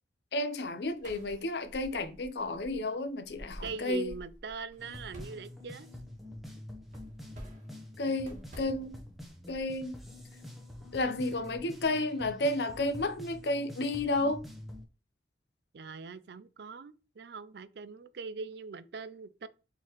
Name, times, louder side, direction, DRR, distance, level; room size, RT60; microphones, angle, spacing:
voice 1, 0.3-4.1 8.0-9.0 9.5-10.0 10.9-14.4, left 2 dB, 70° left, 0.6 m, -32 dB
sound 1, 0.6-11.9, equal, 45° right, 1.4 m, -52 dB
voice 2, 3.6-5.9 15.7-19.5, right 5 dB, 65° right, 0.4 m, -41 dB
sound 2, 4.8-14.8, left 1 dB, ahead, 0.8 m, -47 dB
4.5 x 3.7 x 3.0 m
head